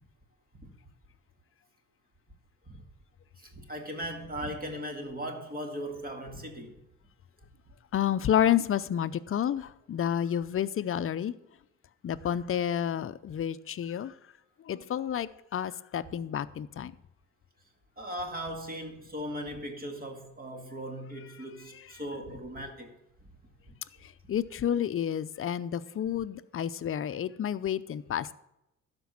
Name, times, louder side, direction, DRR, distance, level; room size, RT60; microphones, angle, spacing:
voice 1, 3.7-6.7 18.0-22.9, equal, 30° right, 2.3 m, -38 dB
voice 2, 7.9-11.3 12.0-14.1 14.7-16.9 21.8-21.9 24.3-28.3, left 9 dB, 45° left, 0.6 m, -30 dB
12.5 x 5.3 x 7.2 m
cardioid pair, 90°, 30 cm